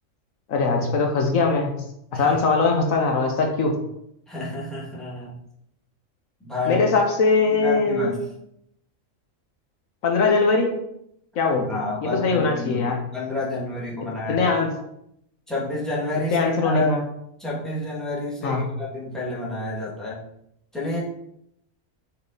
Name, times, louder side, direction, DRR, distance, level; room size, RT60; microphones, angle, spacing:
voice 1, 0.5-1.8 2.1-3.8 6.7-8.1 10.0-10.8 11.3-11.8 12.1-13.0 14.3-14.7 16.3-17.0 18.4-18.7, left 4 dB, 80° left, 2 dB, 1.3 m, -21 dB
voice 2, 4.3-5.4 6.4-6.8 7.5-8.2 11.7-14.5 15.5-16.9 17.4-20.2 20.7-21.0, left 2 dB, ahead, -8 dB, 1.8 m, -29 dB
5.3 x 4.6 x 3.9 m, 0.77 s
omnidirectional pair, 1.4 m